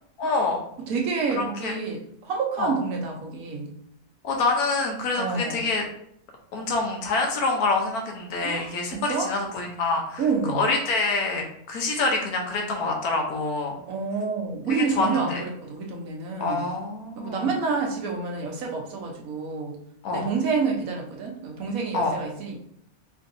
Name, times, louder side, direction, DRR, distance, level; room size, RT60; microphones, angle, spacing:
voice 1, 0.2-0.6 1.4-1.7 2.6-2.7 4.2-5.9 6.5-10.2 10.5-13.8 14.7-15.4 16.4-17.5 20.0-20.3 21.9-22.2, left 3 dB, 90° left, 1 dB, 1.4 m, -26 dB
voice 2, 0.9-3.7 5.1-5.6 8.4-9.3 10.2-10.7 13.9-16.7 17.2-19.8 20.1-22.6, right 5 dB, 70° right, 0 dB, 1.3 m, -28 dB
4.4 x 3.8 x 2.6 m, 0.72 s
omnidirectional pair, 1.5 m